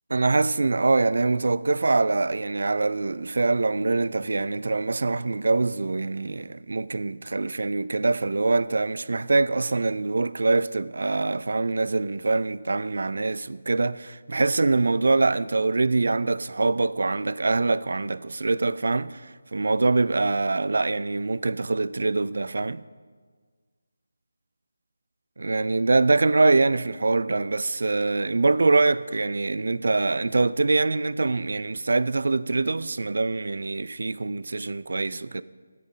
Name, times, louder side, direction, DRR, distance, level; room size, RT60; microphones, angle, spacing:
voice 1, 0.1-22.8 25.4-35.4, right 3 dB, 65° right, 0.4 m, -24 dB
13.5 x 11.0 x 4.0 m
figure-of-eight pair, 160°, 0 cm